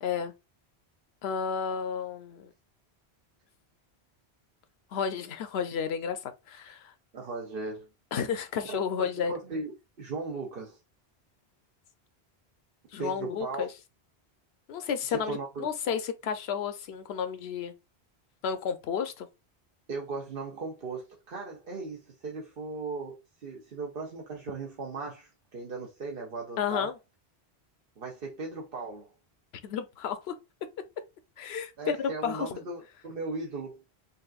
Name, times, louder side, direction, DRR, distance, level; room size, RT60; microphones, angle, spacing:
voice 1, 0.0-0.3 1.2-2.5 4.9-6.9 8.1-9.3 12.9-13.7 14.7-17.7 18.4-19.3 26.6-26.9 29.6-30.4 31.4-32.5, left 7 dB, 75° left, 0.9 m, -32 dB
voice 2, 7.1-7.9 8.7-10.8 13.0-13.7 15.1-15.7 19.9-26.9 28.0-29.1 31.8-33.9, right 3 dB, 60° right, 1.0 m, -37 dB
5.3 x 2.5 x 2.4 m
omnidirectional pair, 1.1 m